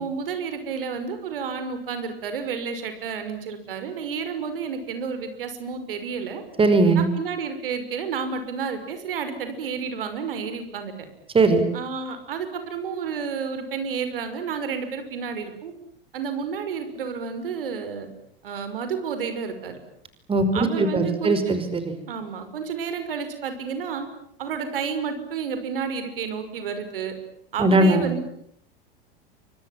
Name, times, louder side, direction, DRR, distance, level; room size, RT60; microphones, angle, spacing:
voice 1, 0.0-6.4 6.9-10.9 11.7-15.7 16.1-18.1 18.4-19.8 20.5-21.5 22.1-24.1 24.4-27.1 27.5-28.3, right 6 dB, 70° right, 9 dB, 5.9 m, -31 dB
voice 2, 6.6-7.1 11.3-11.7 20.3-22.0 27.6-28.1, right 2 dB, 20° right, 10 dB, 5.4 m, -19 dB
29.5 x 26.0 x 7.6 m, 0.71 s
figure-of-eight pair, 85°, 29 cm